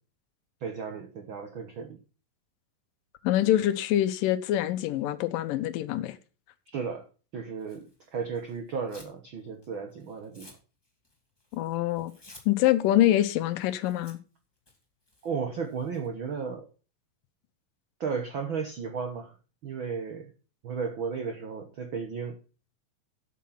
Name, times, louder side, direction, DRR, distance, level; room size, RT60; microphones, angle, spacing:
voice 1, 0.6-2.0 6.7-7.1 7.3-7.8 8.1-10.5 15.2-16.7 18.0-19.3 19.6-20.3 20.6-22.3, right 5 dB, 70° right, 1.1 m, -34 dB
voice 2, 3.2-6.2 11.5-12.1 12.5-14.2, left 13 dB, 80° left, 2.4 m, -25 dB
Tearing, 7.6-9.2 9.5-16.1, left 1 dB, 10° left, 1.5 m, -56 dB
8.6 x 8.2 x 5.7 m
omnidirectional pair, 4.0 m